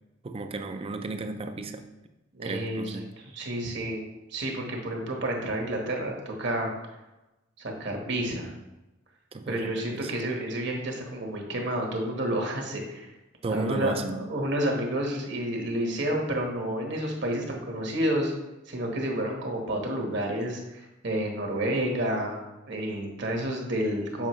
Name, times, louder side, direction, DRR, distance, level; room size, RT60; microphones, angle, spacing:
voice 1, 0.2-1.9 2.4-3.1 9.3-10.1 13.4-14.2, right 3 dB, 30° right, 0.4 m, -34 dB
voice 2, 2.3-6.7 7.6-8.5 9.5-13.1 13.5-18.3 18.7-22.4 22.7-24.3, right 1 dB, 65° right, 1.3 m, -30 dB
7.3 x 5.1 x 3.1 m
head